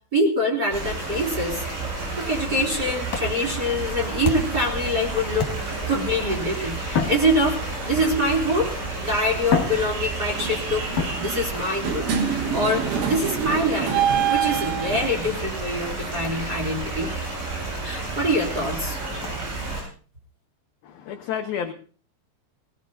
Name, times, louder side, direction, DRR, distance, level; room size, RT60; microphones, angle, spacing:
voice 1, 0.0-1.6 2.2-17.1 17.8-19.0, equal, 25° right, -3 dB, 3.5 m, -25 dB
sound 1, 0.7-19.8, right 3 dB, 75° right, 10.0 m, -31 dB
sound 2, 3.1-4.7 5.4-6.0 6.8-8.0 8.8-8.9 9.4-10.5 10.9-11.7 13.1-13.4 14.5-14.7 15.3-15.4 15.8-15.9 16.2-16.4 16.7-16.8 17.2-17.3 17.7-17.8 18.3-18.4 19.2-19.4, left 6 dB, 45° left, 2.8 m, -30 dB
sound 3, 8.7-8.8 9.7-10.0 10.3-15.4, right 8 dB, 90° right, 4.1 m, -27 dB
voice 2, 20.8-21.7, left 8 dB, 80° left, 6 dB, 2.1 m, -30 dB
20.5 x 19.0 x 2.8 m, 0.39 s
omnidirectional pair, 5.3 m